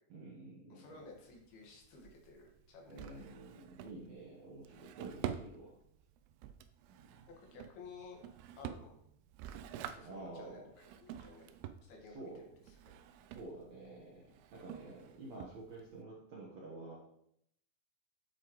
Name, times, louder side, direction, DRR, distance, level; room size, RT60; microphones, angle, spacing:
voice 1, 0.1-1.0 2.9-5.8 6.9-7.2 10.0-10.7 12.0-12.5 13.3-17.0, right 2 dB, 60° right, -4 dB, 1.8 m, -50 dB
voice 2, 0.7-3.3 7.4-8.2 8.6-8.9 9.8-11.4 11.8-12.3 12.7-12.8, left 4 dB, 70° left, 0 dB, 3.5 m, -54 dB
Drawer open or close, 0.8-16.0, right 10 dB, 80° right, 2.4 m, -49 dB
9.3 x 7.9 x 3.1 m, 0.74 s
omnidirectional pair, 4.8 m